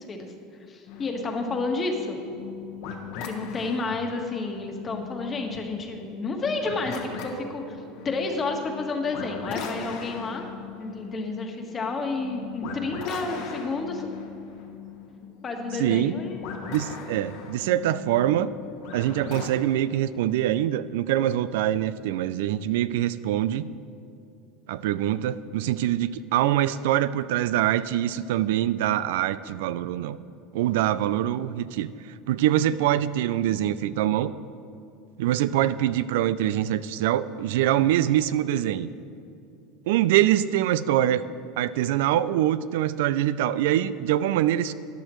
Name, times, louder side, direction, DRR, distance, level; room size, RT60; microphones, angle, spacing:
voice 1, 0.7-2.2 3.2-10.4 10.8-14.1 15.4-16.5, left 3 dB, 30° left, 3 dB, 1.4 m, -30 dB
sound 1, 0.9-19.5, left 6 dB, 70° left, 1.4 m, -39 dB
voice 2, 15.8-16.1 16.7-18.5 18.9-23.7 24.7-30.2 30.5-34.3 35.2-38.9 39.9-41.2 41.6-44.7, right 12 dB, 80° right, 15 dB, 0.3 m, -24 dB
14.0 x 9.9 x 3.1 m, 2.6 s
supercardioid pair, 120°, 0 cm